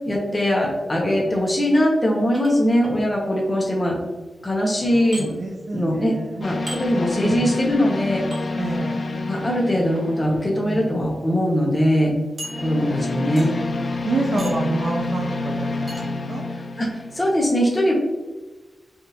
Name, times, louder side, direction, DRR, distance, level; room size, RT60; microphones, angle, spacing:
voice 1, 0.1-4.0 4.4-5.3 5.7-8.2 9.3-12.1 12.6-13.5 14.4-14.5 16.8-17.9, equal, 20° left, -2 dB, 0.7 m, -21 dB
sound 1, 2.3-3.0 5.1-5.3 6.7-6.8 8.3-8.4 9.8-10.0 10.8-10.9 11.2-11.3 12.4-13.0 13.4-13.7 14.4-14.7 15.9-16.1, right 1 dB, 40° right, 0.9 m, -37 dB
voice 2, 4.8-6.5 7.2-7.5 8.5-9.0 10.6-10.9 12.6-12.8 14.0-16.4, right 2 dB, 55° right, 0 dB, 0.4 m, -28 dB
sound 2, 6.4-10.9 12.4-17.2, left 3 dB, 55° left, 0.3 m, -28 dB
3.5 x 2.4 x 2.8 m, 1.2 s
wide cardioid pair, 105°, 0 cm